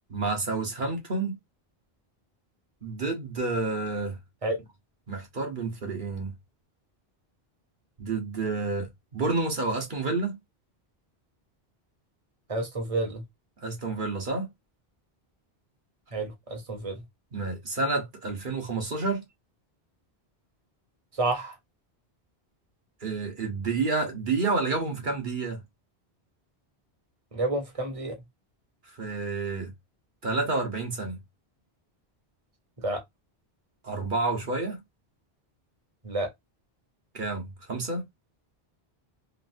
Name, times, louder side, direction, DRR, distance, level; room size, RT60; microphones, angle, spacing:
voice 1, 0.1-1.4 2.8-4.2 5.1-6.3 8.0-10.4 13.6-14.5 17.3-19.2 23.0-25.6 28.9-29.7 30.2-31.2 33.8-34.8 37.1-38.0, right 3 dB, 55° right, 1.1 m, -29 dB
voice 2, 12.5-13.2 16.1-17.0 21.1-21.6 27.3-28.2 32.8-33.0 36.0-36.3, right 2 dB, 35° right, 1.0 m, -30 dB
3.1 x 2.6 x 2.5 m
omnidirectional pair, 1.1 m